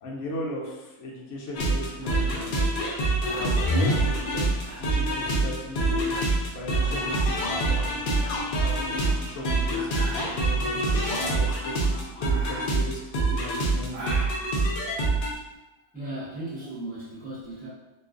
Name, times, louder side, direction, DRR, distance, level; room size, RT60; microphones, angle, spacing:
voice 1, 0.0-2.7 3.3-4.5 4.8-6.1 6.5-8.2 8.6-10.8 11.2-14.2, equal, 65° left, -3 dB, 0.8 m, -37 dB
sound 1, 1.6-15.3, right 2 dB, 85° left, 0.4 m, -25 dB
sound 2, 2.0-15.5, right 1 dB, 55° right, 0.9 m, -43 dB
voice 2, 15.9-17.7, right 1 dB, 10° right, -9 dB, 0.6 m, -36 dB
2.4 x 2.3 x 2.4 m, 1.0 s
omnidirectional pair, 1.5 m